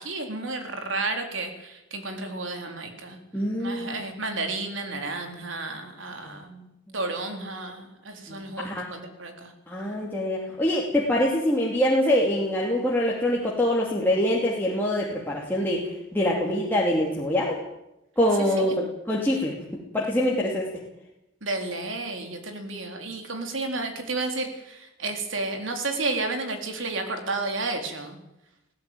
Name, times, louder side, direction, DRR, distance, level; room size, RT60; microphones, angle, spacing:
voice 1, 0.0-3.2 3.6-6.7 6.9-9.5 18.6-18.8 21.4-28.2, right 3 dB, 75° right, 4 dB, 3.9 m, -32 dB
voice 2, 3.3-4.0 6.2-6.3 6.9-7.0 8.3-8.9 9.7-15.8 16.1-17.6 18.2-19.5 19.9-20.7, left 1 dB, 10° left, -4 dB, 2.8 m, -24 dB
19.0 x 16.0 x 9.3 m, 0.92 s
head